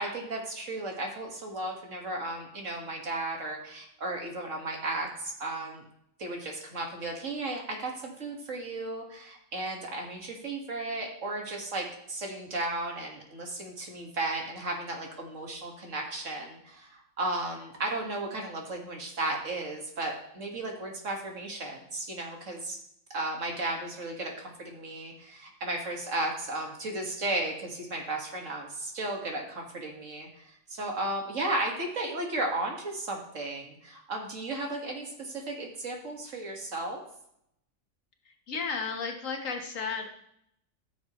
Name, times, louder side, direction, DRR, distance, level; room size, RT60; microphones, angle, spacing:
voice 1, 0.0-5.8 6.2-22.8 23.1-37.0, right 2 dB, 65° right, 1 dB, 2.2 m, -34 dB
voice 2, 38.5-40.1, left 5 dB, 70° left, 3 dB, 1.6 m, -33 dB
14.0 x 7.0 x 3.1 m, 0.74 s
omnidirectional pair, 1.4 m